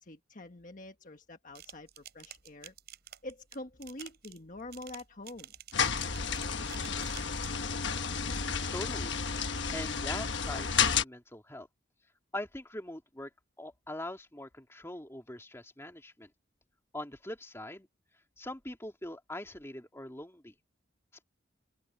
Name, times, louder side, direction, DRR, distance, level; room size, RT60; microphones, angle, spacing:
voice 1, 0.0-2.7 3.2-5.5, left 2 dB, 45° left, 1.4 m, -46 dB
sound 1, 1.5-7.7 8.2-8.7, right 11 dB, 55° right, 7.9 m, -51 dB
sound 2, 5.7-11.0, left 6 dB, 65° left, 1.3 m, -31 dB
voice 2, 8.7-9.2 9.7-11.7 12.3-13.3 13.6-16.3 16.9-17.9 18.4-20.5, left 1 dB, 15° left, 2.4 m, -42 dB
open air
head